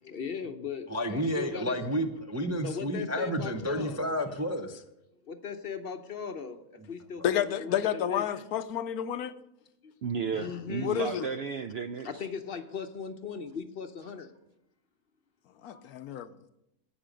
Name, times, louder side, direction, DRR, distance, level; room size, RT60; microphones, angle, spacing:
voice 1, 0.0-1.8 2.6-4.0 5.3-6.6 6.9-8.4 9.8-9.9 10.3-11.0 12.0-14.3, left 6 dB, 50° left, 0.8 m, -38 dB
voice 2, 0.9-4.8 15.7-15.8, equal, 20° right, 0.4 m, -31 dB
voice 3, 7.2-9.3 10.8-11.3 15.6-16.5, left 9 dB, 85° left, 1.2 m, -30 dB
voice 4, 10.0-12.2, right 6 dB, 70° right, 0.6 m, -33 dB
11.5 x 8.9 x 5.1 m
omnidirectional pair, 1.6 m